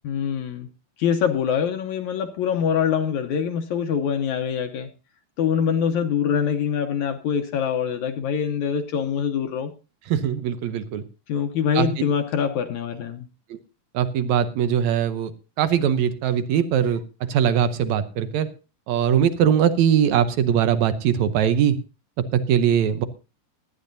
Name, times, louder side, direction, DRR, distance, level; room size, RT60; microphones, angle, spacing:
voice 1, 0.0-0.7 1.0-4.9 5.4-9.7 11.3-13.2, left 7 dB, 70° left, 6 dB, 2.0 m, -24 dB
voice 2, 10.1-11.0 11.8-11.9 13.5-13.6 13.9-15.3 15.6-17.0 17.3-18.5 18.9-21.8 22.2-23.1, right 9 dB, 70° right, 11 dB, 1.9 m, -21 dB
18.0 x 12.0 x 2.7 m, 0.31 s
omnidirectional pair, 4.0 m